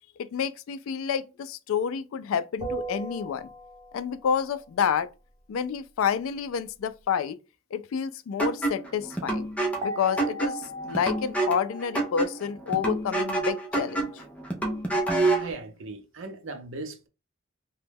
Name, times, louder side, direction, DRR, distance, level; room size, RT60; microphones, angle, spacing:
voice 1, 0.2-3.5 3.9-5.1 5.5-7.4 7.7-9.5 9.8-14.1, left 7 dB, 75° left, 0.3 m, -29 dB
sound 1, 2.6-4.1 9.8-13.2, right 1 dB, 15° right, 1.0 m, -37 dB
sound 2, 8.4-15.5, right 2 dB, 5° left, 0.5 m, -28 dB
voice 2, 15.3-17.1, right 3 dB, 70° right, 0.6 m, -38 dB
3.0 x 2.2 x 3.3 m
head